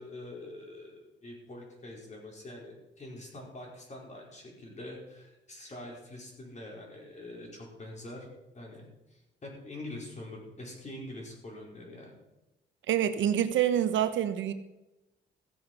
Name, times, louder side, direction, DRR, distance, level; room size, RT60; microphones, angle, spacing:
voice 1, 0.0-8.3 8.5-12.1, left 1 dB, 35° left, -1 dB, 4.9 m, -45 dB
voice 2, 12.9-14.5, right 10 dB, 75° right, 10 dB, 1.1 m, -26 dB
16.0 x 7.5 x 6.2 m, 0.97 s
cardioid pair, 90°, 20 cm